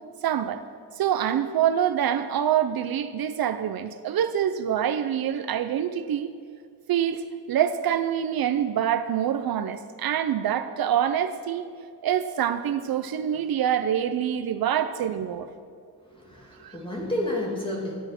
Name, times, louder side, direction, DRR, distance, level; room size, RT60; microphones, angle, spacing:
voice 1, 0.2-0.6 1.0-6.3 6.9-11.7 12.0-15.5 16.6-16.8, right 9 dB, 65° right, 10 dB, 0.6 m, -25 dB
voice 2, 16.1-17.9, left 1 dB, 15° left, -3 dB, 2.6 m, -30 dB
13.5 x 10.5 x 6.0 m, 2.3 s
wide cardioid pair, 175°, 39 cm